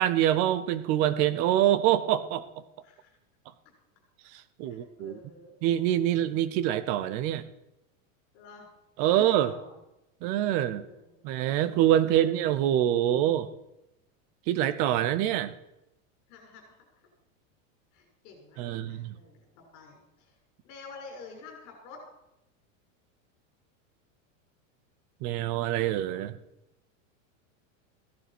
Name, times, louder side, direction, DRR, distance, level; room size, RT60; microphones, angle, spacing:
voice 1, 0.0-2.4 4.3-5.2 5.6-7.4 9.0-9.5 10.2-10.8 11.2-13.5 14.5-15.5 18.6-19.2 25.2-26.4, right 12 dB, 20° right, 14 dB, 0.4 m, -25 dB
voice 2, 2.8-3.2 4.6-5.5 8.3-8.7 9.0-9.8 10.5-11.5 12.0-12.2 16.3-17.1 17.9-19.5 19.7-20.4 20.6-22.0, left 4 dB, 40° left, 1 dB, 6.3 m, -50 dB
16.5 x 11.0 x 5.9 m, 0.88 s
supercardioid pair, 175°, 40 cm